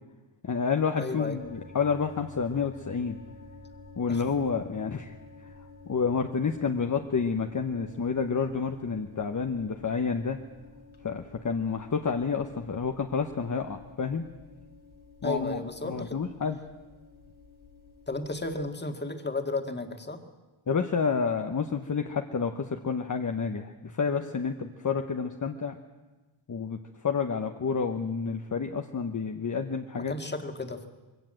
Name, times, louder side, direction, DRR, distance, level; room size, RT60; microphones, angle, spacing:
voice 1, 0.4-3.2 4.0-5.1 5.4-5.5 5.9-10.4 11.0-14.2 15.2-16.6 20.7-25.8 26.5-30.1, left 5 dB, 40° left, 5 dB, 1.1 m, -29 dB
voice 2, 0.9-1.4 4.1-4.2 15.2-16.2 18.1-20.2 30.0-30.9, left 2 dB, 20° left, 6 dB, 1.9 m, -33 dB
sound 1, 1.4-18.7, left 4 dB, 75° left, 3.0 m, -51 dB
22.0 x 17.0 x 7.7 m, 1.2 s
wide cardioid pair, 95°, 47 cm